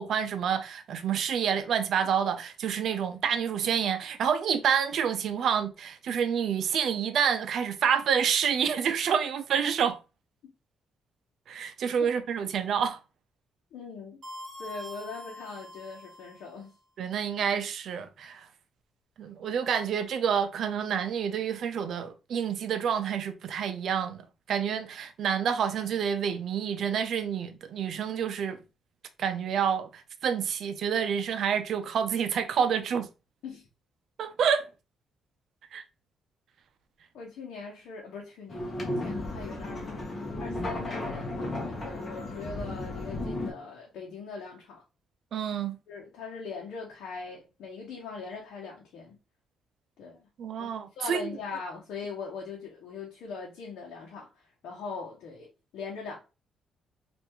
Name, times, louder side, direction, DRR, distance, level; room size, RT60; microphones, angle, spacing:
voice 1, 0.0-10.0 11.5-13.0 17.0-18.5 19.2-28.6 29.2-33.1 34.2-34.7 35.7-35.8 45.3-45.8 50.4-51.3, right 7 dB, 65° right, 0.5 m, -28 dB
voice 2, 13.7-14.2 14.6-16.7 33.4-33.6 37.1-44.8 45.9-49.2 50.0-50.3 50.6-50.7 51.0-55.5 55.7-56.2, left 5 dB, 80° left, 0.9 m, -41 dB
sound 1, 14.2-16.6, left 1 dB, 45° right, 0.9 m, -44 dB
sound 2, 38.5-43.5, left 2 dB, 35° left, 1.0 m, -34 dB
3.3 x 2.6 x 2.9 m
cardioid pair, 90°, 0 cm